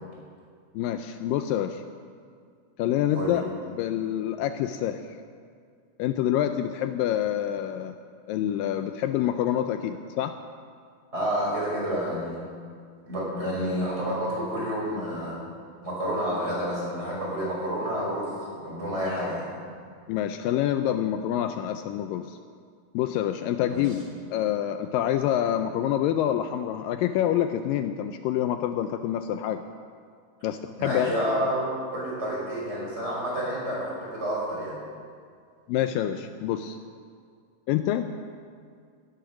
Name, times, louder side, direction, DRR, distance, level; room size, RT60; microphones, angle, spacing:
voice 1, 0.8-1.8 2.8-3.4 3.7-5.0 6.0-8.0 8.3-10.3 20.1-22.4 22.9-24.0 24.3-29.6 30.4-31.2 35.7-36.8 37.7-38.1, left 11 dB, 80° left, 8 dB, 2.2 m, -27 dB
voice 2, 11.1-12.4 13.0-15.4 15.8-19.5 23.7-23.9 30.8-34.7, equal, 15° right, -6 dB, 5.7 m, -29 dB
16.5 x 14.0 x 6.1 m, 2.1 s
omnidirectional pair, 4.1 m